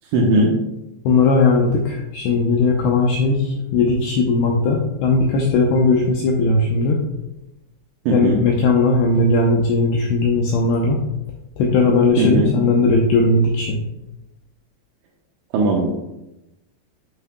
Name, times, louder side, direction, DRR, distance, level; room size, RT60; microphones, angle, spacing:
voice 1, 0.1-0.6 8.1-8.4 12.2-12.5 15.5-15.9, right 2 dB, 80° right, -2 dB, 3.2 m, -17 dB
voice 2, 1.1-7.0 8.1-11.0 11.6-13.8, left 3 dB, 85° left, 0 dB, 2.4 m, -18 dB
11.0 x 5.7 x 2.2 m, 0.93 s
omnidirectional pair, 5.7 m